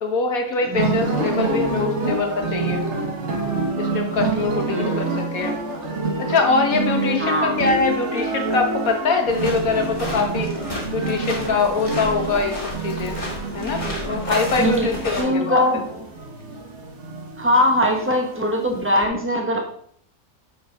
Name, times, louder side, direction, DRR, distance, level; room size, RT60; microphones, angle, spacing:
voice 1, 0.0-2.8 3.8-5.6 6.2-10.5 10.9-13.2 13.5-15.6, left 4 dB, 75° left, 4 dB, 1.7 m, -23 dB
sound 1, 0.7-19.0, right 3 dB, 55° right, 1.6 m, -27 dB
voice 2, 4.7-5.1 7.2-7.6 14.6-16.0 17.4-19.6, left 1 dB, 10° right, 1 dB, 1.4 m, -21 dB
sound 2, 9.3-15.2, left 1 dB, 25° left, 2.2 m, -32 dB
8.8 x 6.6 x 3.6 m, 0.62 s
omnidirectional pair, 1.5 m